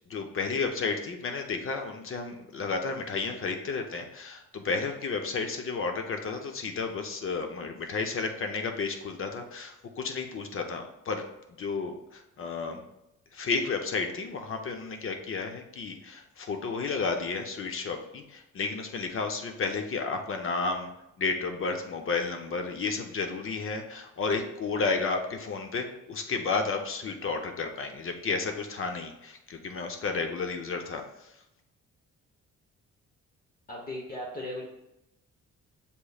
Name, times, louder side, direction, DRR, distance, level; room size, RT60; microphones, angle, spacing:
voice 1, 0.1-11.2 11.6-12.9 13.3-20.9 21.2-31.3, left 4 dB, 45° left, 5 dB, 0.6 m, -32 dB
voice 2, 33.7-34.6, left 1 dB, 30° left, -3 dB, 1.0 m, -37 dB
6.9 x 3.1 x 2.3 m, 0.88 s
cardioid pair, 90°, 30 cm